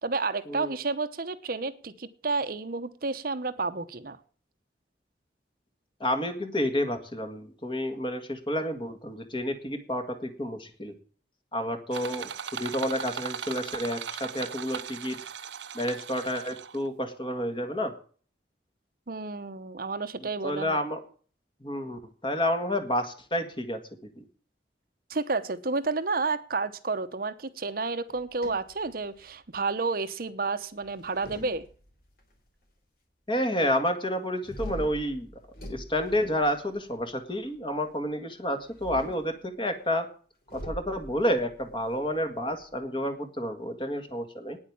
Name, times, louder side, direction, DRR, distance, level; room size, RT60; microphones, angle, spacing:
voice 1, 0.0-4.2 19.1-20.8 25.1-31.6, right 3 dB, 55° right, 10 dB, 0.9 m, -31 dB
voice 2, 6.0-10.9 11.5-15.2 15.7-17.9 20.4-21.0 21.6-23.8 24.2-24.3 33.3-35.3 35.7-40.1 40.5-44.6, equal, 30° left, 7 dB, 1.9 m, -30 dB
sound 1, 11.9-16.9, right 7 dB, 90° right, 0.9 m, -38 dB
sound 2, 28.1-29.5 30.8-32.2 34.4-37.0 38.6-39.3 40.5-42.9, equal, 55° left, 3.6 m, -43 dB
9.7 x 8.4 x 8.7 m, 0.43 s
head